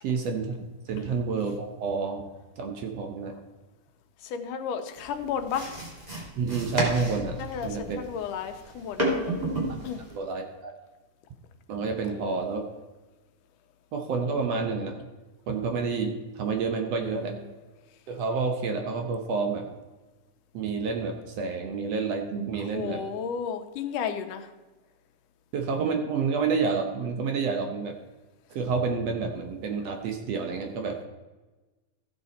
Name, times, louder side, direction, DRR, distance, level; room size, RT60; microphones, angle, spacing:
voice 1, 0.0-2.3 2.6-3.3 6.4-7.4 7.6-8.0 10.1-10.7 11.7-12.7 13.9-15.0 15.5-17.3 18.1-19.6 20.5-23.0 25.5-28.0 28.5-31.1, right 4 dB, 65° right, 4 dB, 1.8 m, -29 dB
voice 2, 4.2-5.8 7.4-9.4 9.8-10.0 12.3-12.4 22.6-24.5, left 7 dB, 85° left, 7 dB, 2.4 m, -33 dB
sound 1, 5.0-10.2, right 1 dB, 15° right, 2.0 m, -32 dB
15.0 x 6.8 x 4.2 m, 1.2 s
omnidirectional pair, 3.6 m